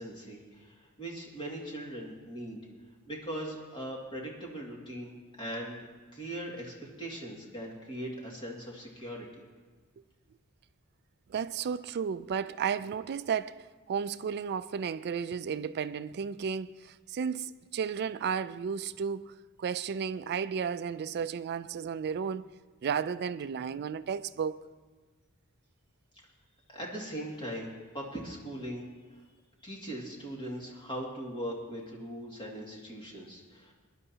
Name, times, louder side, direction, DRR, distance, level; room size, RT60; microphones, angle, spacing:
voice 1, 0.0-2.6 3.1-5.8 6.1-9.4 26.7-28.8 29.6-33.7, right 1 dB, 20° left, 2.2 m, -40 dB
voice 2, 11.3-22.5 22.8-24.6, right 7 dB, 50° right, 0.3 m, -33 dB
21.5 x 10.5 x 2.9 m
head